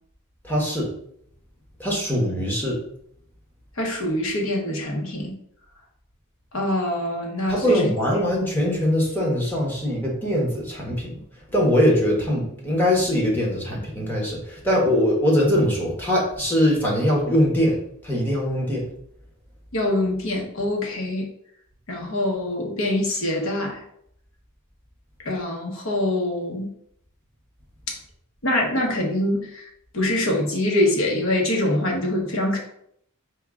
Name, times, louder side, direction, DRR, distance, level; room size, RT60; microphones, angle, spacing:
voice 1, 0.4-0.9 1.8-2.8 7.5-11.2 11.5-17.8 18.0-18.9, equal, 10° left, -3 dB, 1.1 m, -22 dB
voice 2, 3.8-5.3 6.5-7.9 19.7-21.3 21.9-23.8 25.2-26.7 28.4-29.7 29.9-32.6, left 1 dB, 65° left, 0 dB, 1.0 m, -24 dB
4.5 x 2.3 x 3.6 m, 0.70 s
head